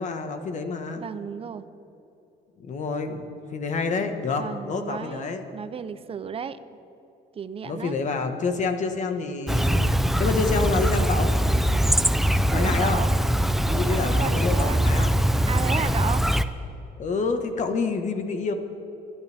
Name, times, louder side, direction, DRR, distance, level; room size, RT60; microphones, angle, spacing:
voice 1, 0.0-1.0 2.6-5.4 7.6-9.9 10.2-11.3 12.5-13.0 13.7-15.1 15.8-15.9 17.0-18.5, left 4 dB, 45° left, 6 dB, 1.5 m, -28 dB
voice 2, 1.0-1.6 4.4-6.6 7.3-7.9 12.4-13.2 13.7-14.9 15.5-16.3, right 7 dB, 35° right, 12 dB, 0.8 m, -33 dB
Chirp tweet, 9.5-16.4, equal, ahead, 0.5 m, -22 dB
26.0 x 11.5 x 3.6 m, 3.0 s
cardioid pair, 110°, 17 cm